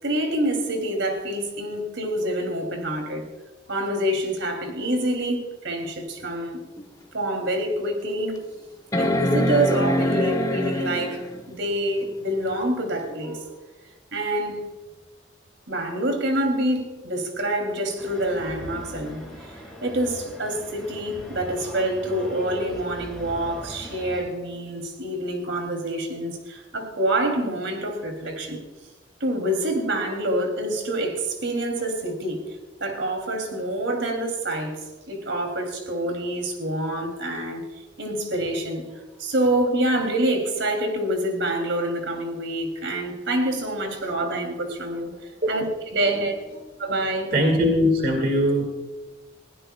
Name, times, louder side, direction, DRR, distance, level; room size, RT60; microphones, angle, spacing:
voice 1, 0.0-3.3 3.7-6.6 7.1-8.4 9.0-13.6 14.1-14.7 15.7-28.6 29.2-32.4 32.8-37.7 38.0-45.1 45.5-45.7 45.9-46.4 46.8-47.4, right 1 dB, 75° right, 2.7 m, -26 dB
sound 1, 6.8-6.9 7.4-7.5 8.9-11.4 13.1-13.2, equal, 20° left, 1.1 m, -24 dB
sound 2, 18.0-24.2, equal, ahead, 4.2 m, -40 dB
voice 2, 47.3-48.6, equal, 50° right, 2.0 m, -20 dB
21.5 x 16.0 x 2.3 m
head